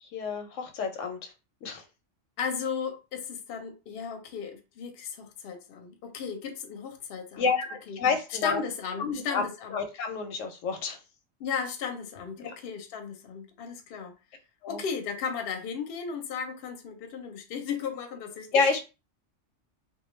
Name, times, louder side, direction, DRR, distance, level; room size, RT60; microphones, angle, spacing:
voice 1, 0.0-1.3 1.6-1.8 7.4-8.6 9.0-11.0 12.4-12.5 14.6-14.8 18.5-18.8, left 5 dB, 85° left, 1.0 m, -29 dB
voice 2, 2.4-7.6 7.9-8.0 8.4-9.8 11.4-14.1 14.7-18.5, left 6 dB, 60° left, 0.7 m, -35 dB
2.2 x 2.2 x 3.1 m
omnidirectional pair, 1.3 m